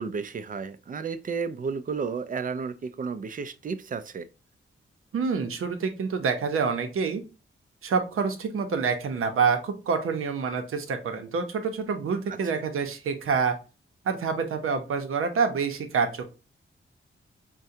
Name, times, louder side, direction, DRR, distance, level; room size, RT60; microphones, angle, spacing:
voice 1, 0.0-4.3 12.3-12.6, right 5 dB, 40° right, 0.4 m, -33 dB
voice 2, 5.1-7.2 7.8-13.5 14.0-16.3, right 5 dB, 90° right, 0.7 m, -27 dB
4.6 x 2.2 x 2.6 m
wide cardioid pair, 95°, 21 cm